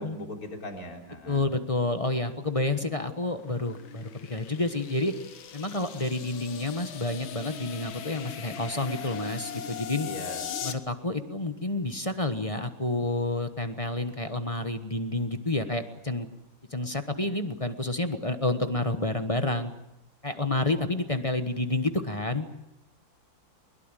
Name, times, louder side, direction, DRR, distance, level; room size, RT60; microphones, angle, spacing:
voice 1, 0.0-1.5 10.0-10.4, left 1 dB, 45° left, 2 dB, 4.1 m, -39 dB
voice 2, 1.3-5.1 5.5-10.1 10.6-16.3 16.7-19.7 20.2-22.5, left 2 dB, 20° left, 8 dB, 1.1 m, -29 dB
sound 1, 2.8-10.7, left 8 dB, 80° left, 2.1 m, -40 dB
21.5 x 21.5 x 9.1 m, 0.85 s
omnidirectional pair, 2.2 m